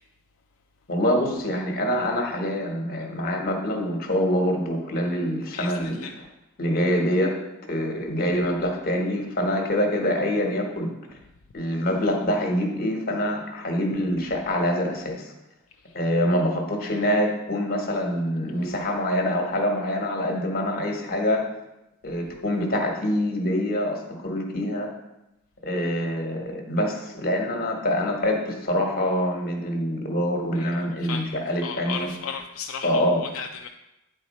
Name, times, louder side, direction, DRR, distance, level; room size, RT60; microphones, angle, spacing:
voice 1, 0.9-6.2 6.6-7.3 7.7-10.9 11.5-15.3 15.9-21.4 22.0-24.9 25.6-32.1 32.8-33.2, equal, 45° left, 1 dB, 1.3 m, -25 dB
voice 2, 5.5-6.1 30.6-33.7, left 6 dB, 75° left, 3 dB, 0.4 m, -35 dB
9.2 x 4.1 x 4.2 m, 0.93 s
head